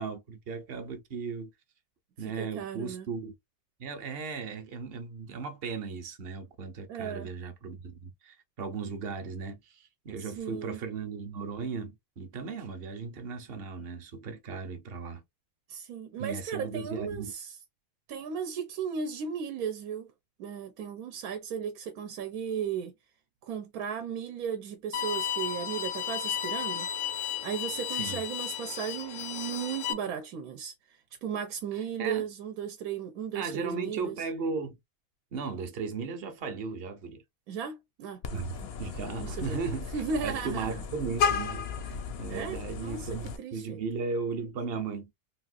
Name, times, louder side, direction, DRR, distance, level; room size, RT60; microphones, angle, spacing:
voice 1, 0.0-1.5 2.2-3.3 3.8-15.2 16.2-17.3 27.9-28.2 32.0-32.3 33.3-34.8 35.3-37.2 38.3-39.9 40.2-45.1, right 5 dB, 50° right, 0.8 m, -36 dB
voice 2, 2.2-3.1 6.9-7.3 10.2-10.8 15.7-17.6 18.1-20.1 20.4-22.9 23.4-26.9 27.4-34.2 37.5-39.6 39.9-40.8 42.3-43.8, right 7 dB, 80° right, 1.1 m, -36 dB
Bowed string instrument, 24.9-29.9, left 10 dB, 80° left, 1.1 m, -34 dB
Vehicle horn car horn honking, 38.2-43.4, left 6 dB, 60° left, 0.6 m, -34 dB
3.6 x 2.4 x 2.4 m
omnidirectional pair, 1.6 m